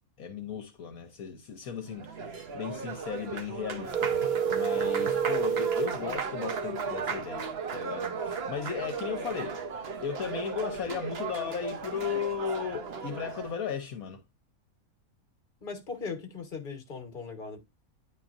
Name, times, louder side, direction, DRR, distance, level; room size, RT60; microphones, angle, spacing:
voice 1, 0.2-4.1 4.5-9.6 10.0-14.2, left 7 dB, 70° left, 1.3 m, -36 dB
Applause, 1.8-13.6, right 5 dB, 50° right, 1.0 m, -36 dB
sound 1, 3.9-6.0, right 7 dB, 75° right, 0.4 m, -28 dB
voice 2, 15.6-17.6, left 4 dB, 35° left, 1.5 m, -38 dB
9.6 x 4.4 x 2.6 m
omnidirectional pair, 1.6 m